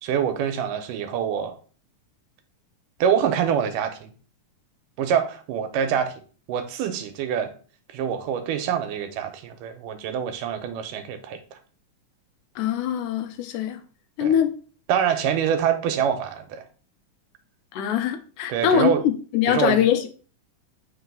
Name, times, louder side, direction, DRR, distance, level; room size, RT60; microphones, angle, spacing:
voice 1, 0.0-1.6 3.0-4.1 5.0-6.1 6.5-7.5 7.9-11.6 14.2-14.4 14.9-16.7 18.5-19.0 19.5-19.8, right 8 dB, 80° right, 2.3 m, -25 dB
voice 2, 12.6-13.8 14.2-14.5 17.7-20.1, left 9 dB, 80° left, 2.1 m, -23 dB
4.7 x 3.9 x 5.2 m
omnidirectional pair, 3.8 m